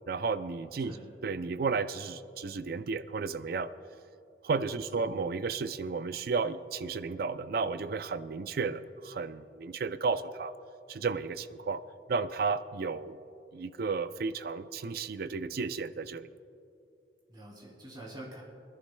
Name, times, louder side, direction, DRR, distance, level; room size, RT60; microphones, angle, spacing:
voice 1, 0.1-0.9 1.2-3.7 4.4-10.5 10.9-11.8 12.1-13.2 13.5-16.3, right 4 dB, 55° right, 13 dB, 0.4 m, -33 dB
voice 2, 4.7-5.1 17.3-18.4, right 1 dB, 25° right, -3 dB, 2.6 m, -47 dB
26.0 x 11.5 x 2.2 m, 2.6 s
head